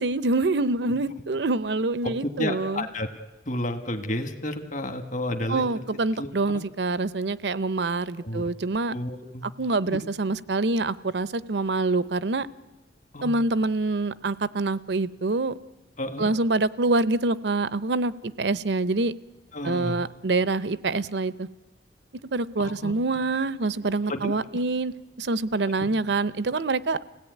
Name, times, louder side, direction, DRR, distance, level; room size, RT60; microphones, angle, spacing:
voice 1, 0.0-2.9 5.5-8.9 9.6-12.5 13.2-15.6 16.2-19.1 19.6-21.5 22.3-27.0, right 3 dB, 70° right, 16 dB, 0.7 m, -26 dB
voice 2, 2.0-3.1 3.5-5.6 6.2-6.6 8.2-8.4 8.9-9.5 13.1-13.3 16.0-16.3 19.5-20.0 22.6-22.9 24.1-24.3 25.7-25.8, left 1 dB, 45° left, 7 dB, 1.6 m, -31 dB
29.0 x 17.0 x 9.3 m, 1.2 s
head